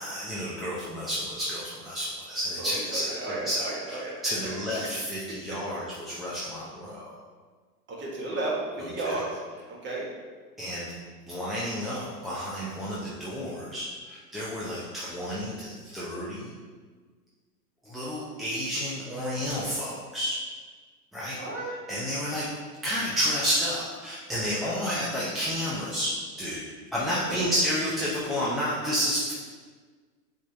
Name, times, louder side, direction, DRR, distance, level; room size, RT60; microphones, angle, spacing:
voice 1, 0.0-7.1 8.8-9.2 10.6-11.0 11.3-16.5 17.8-20.4 21.1-21.4 21.9-22.5 22.8-26.1 26.4-26.6 26.9-29.3, equal, ahead, -8 dB, 0.6 m, -31 dB
voice 2, 2.6-4.2 5.5-5.6 7.9-9.2 9.7-10.0 21.4-21.7 27.3-27.5, right 2 dB, 25° right, -3 dB, 1.5 m, -33 dB
7.2 x 3.9 x 3.4 m, 1.5 s
hypercardioid pair, 110°, 48 cm